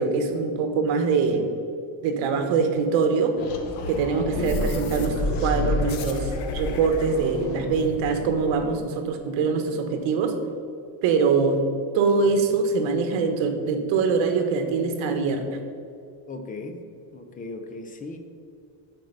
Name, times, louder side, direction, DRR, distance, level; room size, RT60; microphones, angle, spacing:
voice 1, 0.0-1.5 2.0-3.4 3.9-10.3 11.0-11.6 11.9-15.6, right 5 dB, 75° right, 6 dB, 1.2 m, -23 dB
sound 1, 3.4-8.7, left 2 dB, 80° left, 1.1 m, -30 dB
voice 2, 16.3-16.8 17.1-18.2, left 3 dB, 20° left, 6 dB, 0.5 m, -37 dB
7.7 x 4.6 x 6.6 m, 2.5 s
cardioid pair, 170°, 47 cm